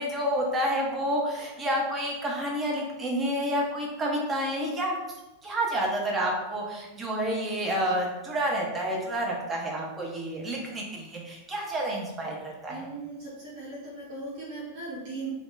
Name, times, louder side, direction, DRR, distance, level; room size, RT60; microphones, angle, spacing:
voice 1, 0.0-4.9 5.4-12.8, equal, 20° right, -2 dB, 0.9 m, -29 dB
voice 2, 12.7-15.3, right 3 dB, 45° right, -9 dB, 1.4 m, -38 dB
3.4 x 3.2 x 2.5 m, 1.0 s
figure-of-eight pair, 90°, 0 cm